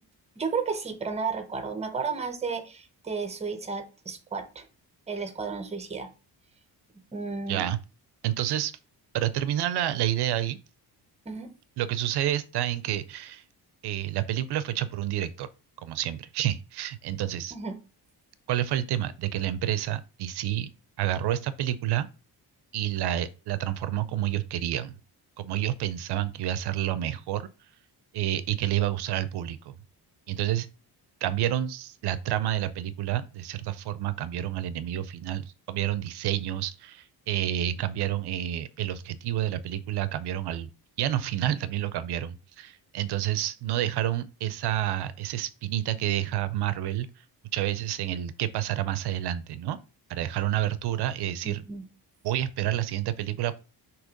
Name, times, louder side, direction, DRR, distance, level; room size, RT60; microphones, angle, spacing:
voice 1, 0.4-4.7 5.1-6.1 7.1-7.7 11.3-11.5 17.5-17.7 51.4-51.8, right 5 dB, 15° right, 0.7 m, -33 dB
voice 2, 7.5-7.8 8.2-8.8 9.1-10.6 11.8-13.4 13.8-15.5 15.8-17.6 18.5-20.7 21.0-22.1 22.7-25.0 25.4-27.5 28.1-29.7 30.3-30.7 31.2-40.7 41.0-47.1 47.5-49.8 50.1-51.6 52.2-53.6, right 12 dB, 75° right, 0.5 m, -29 dB
6.2 x 2.9 x 5.1 m
wide cardioid pair, 175°, 40 cm